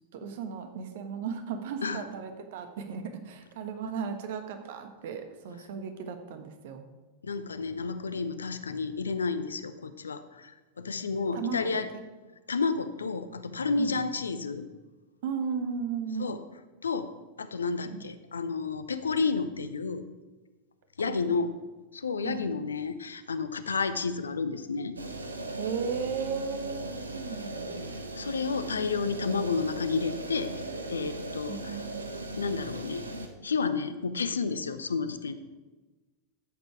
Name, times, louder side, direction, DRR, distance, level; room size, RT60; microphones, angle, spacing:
voice 1, 0.1-6.9 11.3-12.0 13.8-14.0 15.2-16.3 17.8-18.0 21.1-21.4 22.2-22.5 25.6-26.8 27.1-27.8 29.3-29.4 31.5-32.0, right 6 dB, 55° right, 7 dB, 1.3 m, -35 dB
voice 2, 7.2-10.5 10.8-11.9 12.5-14.7 16.2-16.4 16.8-17.1 17.4-20.1 21.0-21.5 21.9-25.0 28.2-30.5 30.9-31.8 32.4-33.0 33.4-35.3, left 4 dB, 70° left, 12 dB, 0.7 m, -31 dB
sound 1, 25.0-33.3, right 2 dB, 80° right, 1.1 m, -38 dB
13.0 x 8.1 x 4.7 m, 1.2 s
figure-of-eight pair, 90°, 0 cm